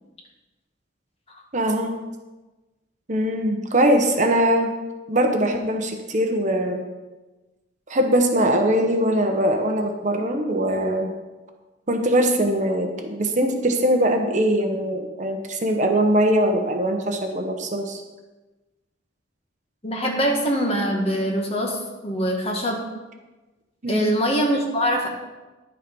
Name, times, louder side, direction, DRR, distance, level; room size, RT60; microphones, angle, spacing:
voice 1, 1.5-1.9 3.1-4.7 5.1-6.8 7.9-11.1 11.9-18.0 23.8-24.2, right 1 dB, 40° right, 4 dB, 1.1 m, -21 dB
voice 2, 19.8-22.8 23.9-25.1, equal, 30° left, 0 dB, 1.8 m, -23 dB
10.5 x 7.4 x 5.4 m, 1.2 s
head